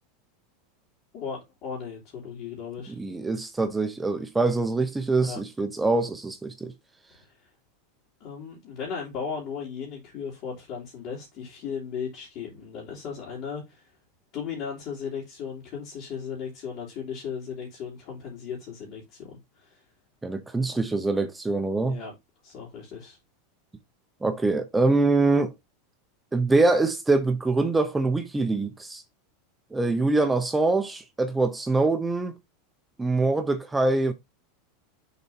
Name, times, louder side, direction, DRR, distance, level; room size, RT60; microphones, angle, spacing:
voice 1, 1.1-3.0 5.2-5.4 7.2-7.5 8.2-13.9 14.3-19.8 21.8-22.1 22.4-23.2, left 6 dB, 35° left, 3.2 m, -36 dB
voice 2, 3.0-6.7 20.2-22.0 24.2-25.5 26.3-29.0 29.7-32.3 33.0-34.1, right 3 dB, 5° right, 0.6 m, -24 dB
6.8 x 4.4 x 4.3 m
supercardioid pair, 175°, 0 cm